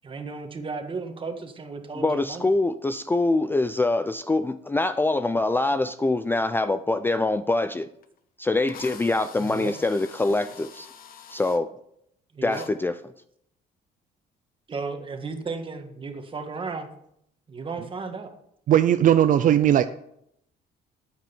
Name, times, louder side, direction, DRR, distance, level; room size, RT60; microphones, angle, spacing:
voice 1, 0.0-2.4 9.4-9.7 12.3-12.6 14.7-16.9 17.5-18.3, right 4 dB, 30° right, 6 dB, 1.7 m, -34 dB
voice 2, 2.0-7.9 8.4-10.9 11.3-11.7 12.4-13.0, left 2 dB, 10° left, 12 dB, 0.4 m, -24 dB
Drill, 8.0-8.1 8.7-11.6 12.5-12.7, left 8 dB, 60° left, 1.2 m, -45 dB
voice 3, 18.7-19.9, right 11 dB, 50° right, 11 dB, 0.5 m, -18 dB
13.0 x 9.2 x 4.5 m, 0.74 s
cardioid pair, 110°, 17 cm